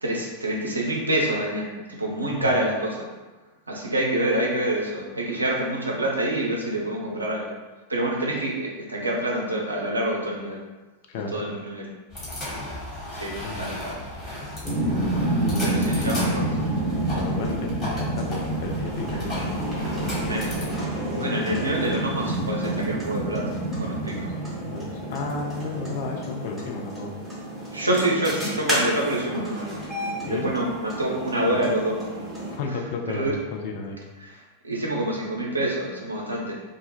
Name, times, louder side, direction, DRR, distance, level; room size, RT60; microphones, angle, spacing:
voice 1, 0.0-3.1 3.7-7.5 7.9-10.6 11.3-11.9 13.2-14.0 15.6-16.5 20.2-20.5 21.2-23.5 23.8-24.3 27.7-29.8 30.3-32.0 33.1-33.4 34.2-34.4 34.6-36.6, right 1 dB, 80° right, -2 dB, 0.5 m, -27 dB
voice 2, 11.1-11.5 13.4-13.7 15.4-16.2 17.1-19.3 21.1-22.0 24.1-24.3 24.6-27.1 30.2-30.5 31.5-31.6 32.6-34.0, left 4 dB, 50° left, 1 dB, 0.4 m, -33 dB
sound 1, 12.1-20.7, left 1 dB, 15° left, 1.4 m, -35 dB
sound 2, 14.6-32.6, right 1 dB, 5° right, 0.8 m, -29 dB
2.1 x 2.1 x 2.9 m, 1.2 s
figure-of-eight pair, 90°, 0 cm